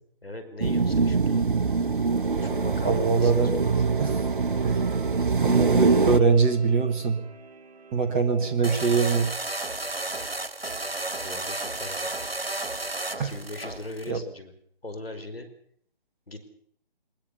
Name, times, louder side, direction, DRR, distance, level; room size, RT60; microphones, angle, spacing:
voice 1, 0.2-1.5 2.4-3.7 11.2-12.1 13.2-14.5 14.8-15.5 16.3-16.4, left 2 dB, 75° left, 7 dB, 5.2 m, -39 dB
wave organ at low tide, 0.6-6.2, right 4 dB, 60° right, 1.1 m, -23 dB
voice 2, 2.8-3.5 4.0-4.3 4.6-4.9 5.4-7.2 7.9-9.4 13.2-13.3 14.1-14.2, right 5 dB, 10° right, 3 dB, 1.1 m, -23 dB
sound 1, 3.0-8.7, right 3 dB, 45° right, 3.6 m, -43 dB
sound 2, 8.6-14.1, right 2 dB, 75° right, 1.8 m, -33 dB
21.0 x 20.5 x 7.0 m, 0.65 s
figure-of-eight pair, 150°, 30 cm